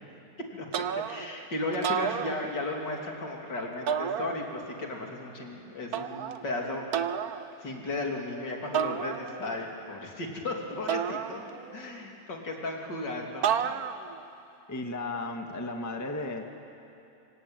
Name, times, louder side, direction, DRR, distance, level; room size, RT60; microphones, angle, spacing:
voice 1, 0.5-6.9 7.6-11.4 11.7-13.7, left 2 dB, 65° left, 0 dB, 3.7 m, -35 dB
sound 1, 0.7-1.4 1.7-2.9 3.9-4.8 5.9-6.4 6.9-7.4 8.7-9.6 10.9-11.9 13.4-14.2, right 8 dB, 60° right, 1.3 m, -31 dB
voice 2, 14.7-16.4, left 2 dB, 10° left, 3 dB, 1.5 m, -34 dB
25.5 x 25.0 x 9.1 m, 2.7 s
omnidirectional pair, 2.0 m